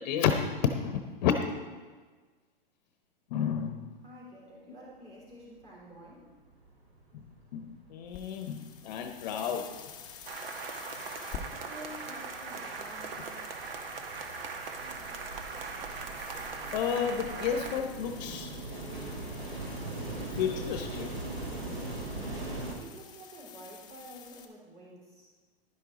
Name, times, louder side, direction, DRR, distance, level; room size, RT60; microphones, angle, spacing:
voice 1, 0.0-1.3 3.3-4.0 7.1-7.2 7.5-9.7 16.7-18.5 20.4-21.1, left 8 dB, 45° left, 6 dB, 0.9 m, -31 dB
voice 2, 4.0-6.3 11.5-13.4 22.8-25.3, equal, 20° right, -6 dB, 3.8 m, -49 dB
sound 1, 6.1-6.2 6.5-7.4 7.8-22.8, right 2 dB, 90° right, 3.0 m, -41 dB
sound 2, 8.0-24.5, left 7 dB, 15° left, 0.7 m, -50 dB
sound 3, 10.3-17.8, right 4 dB, 70° right, 1.3 m, -40 dB
11.0 x 10.5 x 4.0 m, 1.4 s
hypercardioid pair, 160°, 29 cm